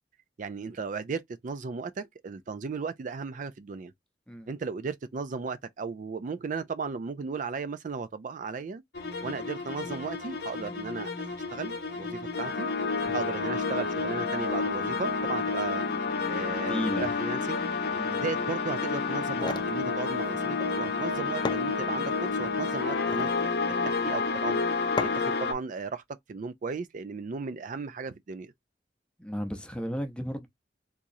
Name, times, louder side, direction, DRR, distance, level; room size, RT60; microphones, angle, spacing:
voice 1, 0.4-3.9 4.5-8.8 9.2-11.1 11.5-12.7 13.1-15.8 16.3-17.7 18.1-23.5 23.8-24.6 25.0-26.0 26.3-28.5, right 5 dB, 45° right, 0.4 m, -35 dB
sound 1, 8.9-25.5, left 4 dB, 65° left, 0.7 m, -30 dB
voice 2, 16.7-17.1 17.9-18.2 29.2-30.5, equal, 5° left, 0.7 m, -34 dB
sound 2, 19.2-19.7 21.0-21.1 21.5-22.2 22.9-23.4 25.0-25.4, left 4 dB, 25° left, 0.3 m, -34 dB
3.6 x 3.0 x 2.6 m
head